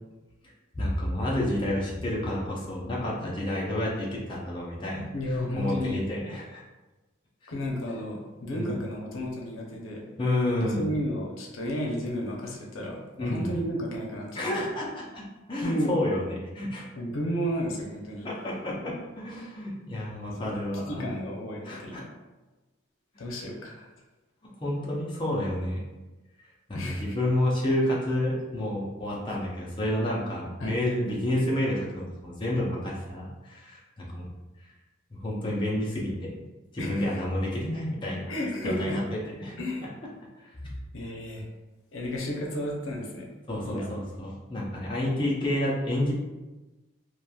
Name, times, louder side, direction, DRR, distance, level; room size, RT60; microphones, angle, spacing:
voice 1, 0.7-6.6 7.4-7.5 8.5-8.8 10.2-10.9 13.2-13.5 14.4-16.9 18.2-21.0 21.6-22.0 23.1-23.3 24.4-25.8 26.7-34.3 35.1-36.3 36.7-38.3 38.6-39.6 40.4-40.7 43.5-46.1, left 1 dB, 25° left, -4 dB, 0.5 m, -30 dB
voice 2, 5.1-6.0 7.5-10.0 10.6-14.6 15.6-15.9 17.0-18.3 20.9-22.1 23.2-23.9 26.7-27.2 30.6-30.7 36.8-37.2 38.3-39.0 39.6-39.9 40.9-41.4 41.9-43.3 43.6-43.9, equal, 85° left, -1 dB, 0.6 m, -32 dB
2.9 x 2.4 x 2.2 m, 1.1 s
head